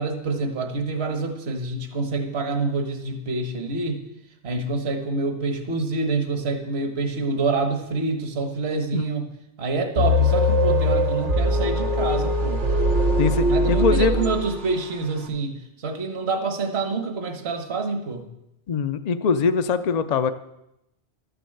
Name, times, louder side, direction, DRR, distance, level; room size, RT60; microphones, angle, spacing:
voice 1, 0.0-4.0 4.4-9.3 9.6-12.6 13.5-15.5 15.8-18.2, right 3 dB, 65° right, 6 dB, 1.5 m, -26 dB
sound 1, 10.0-15.0, left 1 dB, 85° right, 1.5 m, -21 dB
voice 2, 13.2-14.2 18.7-20.3, left 5 dB, 45° left, 9 dB, 0.5 m, -22 dB
12.5 x 6.9 x 7.8 m, 0.86 s
omnidirectional pair, 1.2 m